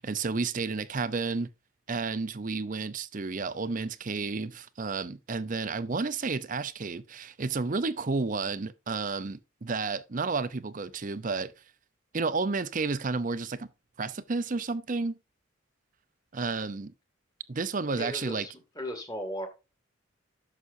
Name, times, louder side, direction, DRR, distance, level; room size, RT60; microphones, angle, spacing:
voice 1, 0.0-1.5 1.9-11.5 12.1-13.7 14.0-15.2 16.3-16.9 17.5-18.5, right 4 dB, 40° right, 0.6 m, -31 dB
voice 2, 17.9-19.5, equal, 20° left, 2.1 m, -37 dB
11.0 x 6.8 x 2.6 m
head